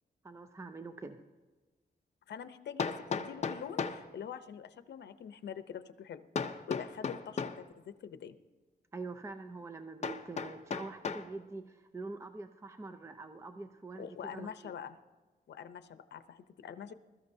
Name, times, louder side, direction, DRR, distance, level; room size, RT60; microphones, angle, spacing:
voice 1, 0.2-1.2 8.9-14.7, right 3 dB, 15° right, 8 dB, 0.5 m, -45 dB
Hammer, 1.2-1.3 2.8-4.1 6.4-7.7 10.0-11.3, left 5 dB, 40° left, 0.6 m, -36 dB
voice 2, 2.3-6.2 6.7-8.3 14.0-15.0 15.5-16.9, left 8 dB, 85° left, 11 dB, 0.7 m, -45 dB
21.0 x 13.5 x 2.7 m, 1.3 s
wide cardioid pair, 145°, 18 cm